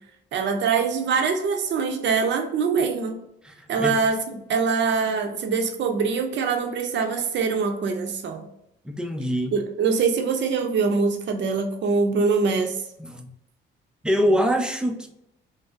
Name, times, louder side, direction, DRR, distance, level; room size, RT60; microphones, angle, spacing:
voice 1, 0.3-3.2 3.7-4.2 4.5-8.5 9.5-12.8, right 5 dB, 65° right, 0.6 m, -23 dB
voice 2, 3.4-4.0 8.8-9.5 13.0-13.3 14.0-15.1, equal, 5° right, 0.5 m, -24 dB
3.9 x 2.0 x 2.4 m
cardioid pair, 90°, 20 cm